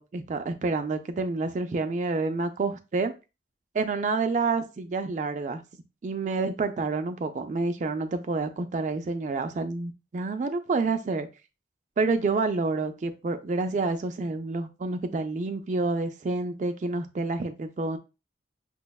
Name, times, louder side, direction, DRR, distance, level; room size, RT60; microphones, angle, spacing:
voice 1, 0.0-3.1 3.7-5.6 6.0-11.3 12.0-18.0, right 3 dB, 40° right, 0.3 m, -28 dB
6.0 x 2.1 x 2.2 m
head